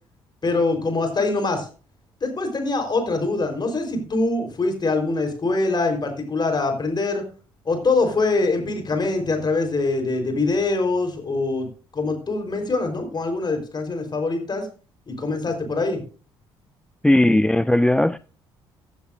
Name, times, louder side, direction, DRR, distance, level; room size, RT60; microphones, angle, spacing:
voice 1, 0.4-1.7 2.2-7.2 7.7-11.7 11.9-14.7 15.1-16.0, left 3 dB, 35° left, 4.2 m, -23 dB
voice 2, 17.0-18.2, left 1 dB, 5° left, 0.4 m, -17 dB
15.0 x 10.5 x 2.6 m
figure-of-eight pair, 50°, 13 cm